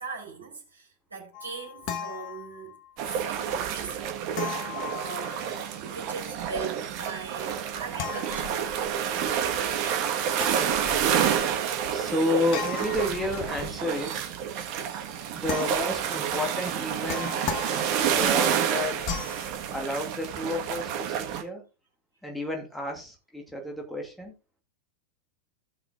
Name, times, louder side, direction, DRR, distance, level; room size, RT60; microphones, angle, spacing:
voice 1, 0.0-2.8 3.1-4.1 4.9-5.6 5.9-8.6, right 4 dB, 80° right, 3.7 m, -40 dB
sound 1, 1.3-2.9 4.3-5.7 8.0-9.0 10.3-11.4 12.5-13.9 15.5-16.1 16.7-18.2 19.0-19.5, left 7 dB, 45° left, 1.2 m, -37 dB
sound 2, 3.0-21.4, right 8 dB, 45° right, 1.5 m, -29 dB
voice 2, 10.6-11.3 11.9-14.3 15.3-17.3 18.0-19.0 19.7-21.6 22.2-24.3, left 1 dB, 5° left, 2.3 m, -31 dB
16.5 x 6.0 x 2.5 m
figure-of-eight pair, 90°, 0 cm